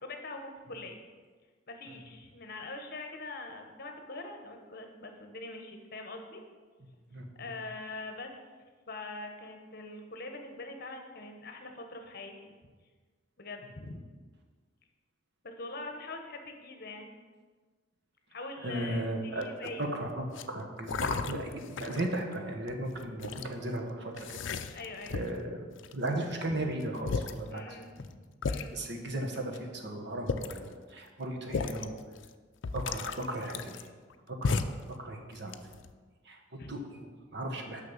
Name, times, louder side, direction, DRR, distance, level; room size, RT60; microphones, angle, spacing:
voice 1, 0.0-1.0 1.7-6.4 7.3-8.3 8.9-12.3 13.4-14.0 15.4-17.1 18.3-19.8 24.7-25.2 27.5-28.1 28.4-28.8 36.6-36.7, left 2 dB, 50° left, 4 dB, 1.1 m, -43 dB
voice 2, 7.1-7.5 18.6-19.5 19.8-24.8 25.1-27.8 28.7-32.0 32.7-33.8 34.3-35.6 36.2-37.8, right 1 dB, 60° right, 3 dB, 1.3 m, -36 dB
sound 1, 19.4-19.8 20.3-20.4 20.9-22.2 22.7-23.5 24.2-25.4 25.8-26.3 26.8-26.9 27.1-27.4 28.0-28.1 28.4-28.7 29.5-29.6 30.1-30.7 31.5-31.8 32.2-32.3 32.6-34.1 34.4-34.9 35.3-35.9, left 4 dB, 70° left, 0.5 m, -34 dB
6.7 x 5.8 x 7.2 m, 1.4 s
head